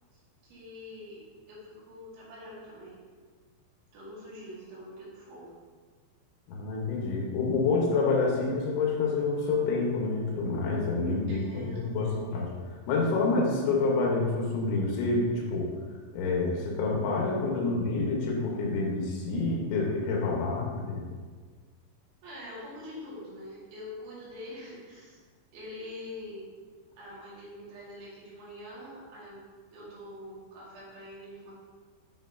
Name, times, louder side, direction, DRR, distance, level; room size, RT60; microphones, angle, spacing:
voice 1, 0.1-1.2 1.5-3.0 3.9-5.6 11.3-12.2 22.2-25.2 25.5-26.5 27.0-29.4 29.7-31.5, left 1 dB, 75° right, -7 dB, 4.4 m, -45 dB
voice 2, 6.5-12.5 12.9-15.7 16.1-21.0, left 3 dB, 75° left, -2 dB, 3.5 m, -28 dB
9.7 x 6.1 x 2.7 m, 1.5 s
omnidirectional pair, 5.6 m